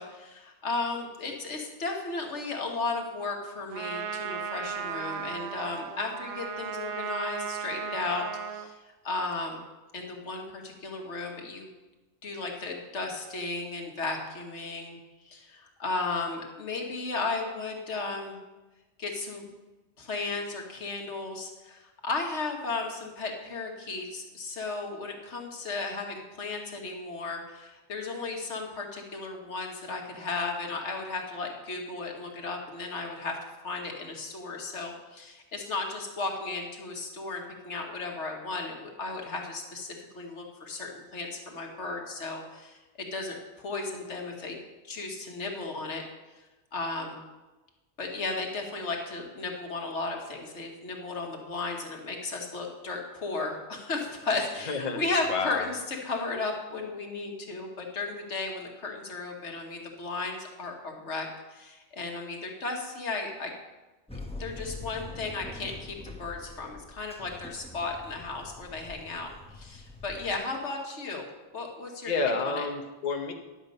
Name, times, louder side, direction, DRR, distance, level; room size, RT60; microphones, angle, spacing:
voice 1, 0.0-9.6 9.9-11.7 12.2-15.0 15.3-18.4 19.0-19.5 20.0-33.4 33.6-44.6 44.8-46.0 46.7-47.2 48.0-63.5 64.1-71.3 71.5-72.1 72.4-72.7, left 3 dB, 80° left, 2 dB, 1.7 m, -35 dB
Trumpet, 3.7-8.7, right 7 dB, 80° right, 1.0 m, -36 dB
voice 2, 54.7-55.0 55.3-55.7 72.0-73.3, left 4 dB, 45° left, 3 dB, 0.9 m, -29 dB
sound 1, 64.1-70.4, left 2 dB, 5° left, 0.8 m, -44 dB
10.5 x 7.3 x 5.3 m, 1.2 s
omnidirectional pair, 1.2 m